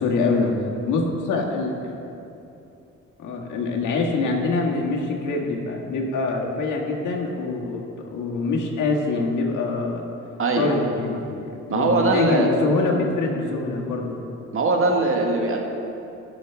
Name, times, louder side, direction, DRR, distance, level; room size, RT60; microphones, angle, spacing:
voice 1, 0.0-1.9 3.2-10.0 10.6-14.2, left 3 dB, 80° left, 0 dB, 1.7 m, -25 dB
voice 2, 10.4-10.7 11.7-12.5 14.5-15.7, right 3 dB, 45° right, 1 dB, 1.6 m, -21 dB
18.0 x 6.3 x 3.5 m, 2.8 s
cardioid pair, 90°, 30 cm